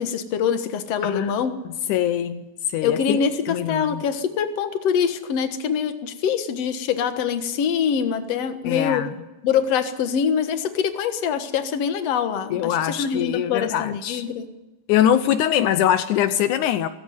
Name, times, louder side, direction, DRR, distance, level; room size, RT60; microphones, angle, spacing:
voice 1, 0.0-1.5 2.8-9.1 9.4-14.5, left 7 dB, 55° left, 1.9 m, -24 dB
voice 2, 1.9-2.4 2.7-3.2 3.5-4.0 8.6-9.1 12.5-14.2 14.9-16.9, left 11 dB, 85° left, 1.7 m, -22 dB
17.0 x 16.0 x 9.5 m
omnidirectional pair, 4.5 m